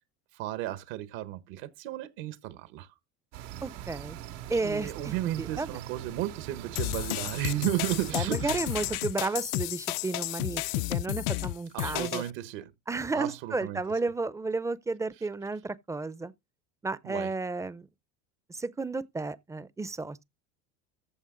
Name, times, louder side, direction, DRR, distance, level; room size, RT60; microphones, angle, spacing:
voice 1, 0.3-2.9 4.6-8.6 11.7-12.7 13.1-13.8 17.0-17.3, right 14 dB, 70° right, 1.3 m, -34 dB
sound 1, 3.3-9.0, right 12 dB, 90° right, 2.2 m, -42 dB
voice 2, 3.6-4.2 4.5-5.7 8.1-10.6 10.9-12.2 12.9-16.3 16.8-17.9 18.5-20.2, right 3 dB, 10° right, 0.5 m, -32 dB
sound 2, 6.8-12.3, left 20 dB, 65° left, 0.5 m, -32 dB
14.5 x 5.5 x 3.8 m
supercardioid pair, 125°, 35 cm